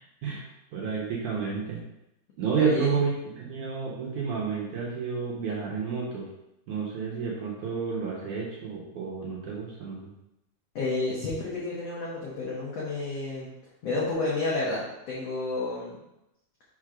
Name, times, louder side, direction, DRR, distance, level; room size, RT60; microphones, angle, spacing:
voice 1, 0.7-1.8 2.4-6.3 6.7-10.1, right 5 dB, 65° right, -4 dB, 2.0 m, -30 dB
voice 2, 2.5-3.0 10.7-13.5 13.8-16.0, left 2 dB, 75° left, -6 dB, 1.5 m, -30 dB
6.3 x 4.1 x 4.9 m, 0.90 s
omnidirectional pair, 4.6 m